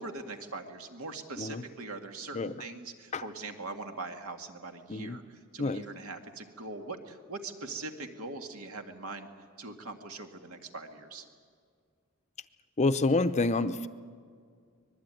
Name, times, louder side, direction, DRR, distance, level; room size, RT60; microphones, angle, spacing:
voice 1, 0.0-5.2 5.5-9.3 9.6-11.3, right 3 dB, 80° right, 5 dB, 2.2 m, -41 dB
voice 2, 12.8-13.9, left 3 dB, 30° left, 11 dB, 0.6 m, -28 dB
25.0 x 20.5 x 9.2 m, 2.1 s
head